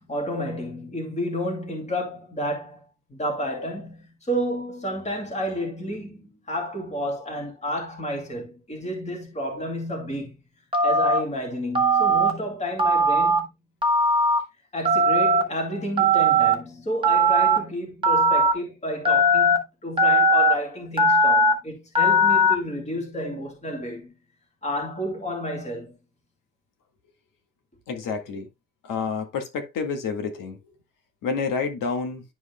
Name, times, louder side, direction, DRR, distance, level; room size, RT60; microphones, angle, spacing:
voice 1, 0.0-2.8 3.1-10.4 10.8-13.5 14.7-24.1 24.6-26.0, equal, 20° left, 2.5 m, -31 dB
Telephone, 10.7-11.2 11.7-12.3 12.8-13.4 13.8-14.4 14.8-15.4 16.0-16.5 17.0-17.6 18.0-18.5 19.0-19.6 20.0-20.5 21.0-21.5 21.9-22.5, right 1 dB, 15° right, 1.2 m, -19 dB
voice 2, 27.9-28.5 28.8-30.6 31.2-32.2, left 5 dB, 80° left, 1.8 m, -29 dB
11.0 x 5.0 x 2.2 m
cardioid pair, 155°, 32 cm